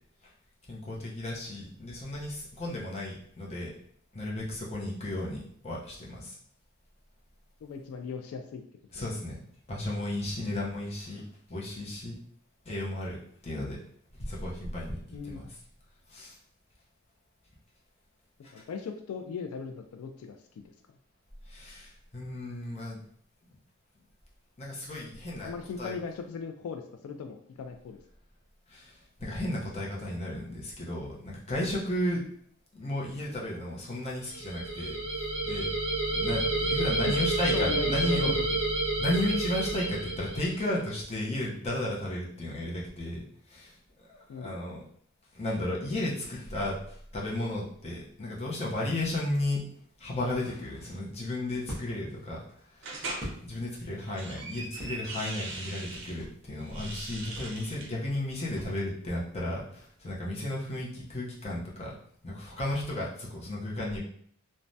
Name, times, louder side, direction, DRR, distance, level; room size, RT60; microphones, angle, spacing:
voice 1, 0.7-3.7 4.1-6.4 8.9-11.2 11.5-12.2 12.6-13.2 13.4-13.8 14.1-15.6 16.1-16.4 18.4-18.6 21.5-23.0 24.6-25.5 25.8-26.0 28.7-32.2 32.7-35.7 36.1-38.4 39.0-43.8 44.0-44.8 45.3-49.6 50.0-53.1 53.4-62.0 62.2-64.0, left 1 dB, 30° left, -4 dB, 0.6 m, -34 dB
voice 2, 7.6-8.6 10.5-10.6 15.1-15.5 18.5-20.6 25.4-28.0 37.5-38.3 44.3-44.6, left 5 dB, 85° left, 8 dB, 0.3 m, -38 dB
sound 1, 34.3-40.7, right 2 dB, 25° right, 1.0 m, -29 dB
sound 2, 51.6-54.0 54.3-56.5 56.8-57.0 57.3-59.2, equal, ahead, 1.1 m, -44 dB
sound 3, 52.8-53.3 53.9-56.1 56.6-57.9, right 3 dB, 60° right, 0.5 m, -40 dB
3.2 x 2.1 x 2.6 m, 0.62 s
head